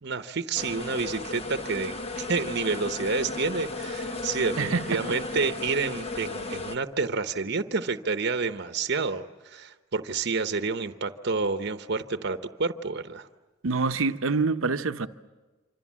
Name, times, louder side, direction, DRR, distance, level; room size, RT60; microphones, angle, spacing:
voice 1, 0.0-13.3, right 4 dB, 55° right, 0.9 m, -29 dB
sound 1, 0.6-6.8, left 3 dB, 30° left, 1.0 m, -35 dB
voice 2, 13.6-15.1, right 4 dB, 85° right, 0.8 m, -26 dB
26.0 x 25.5 x 7.5 m
head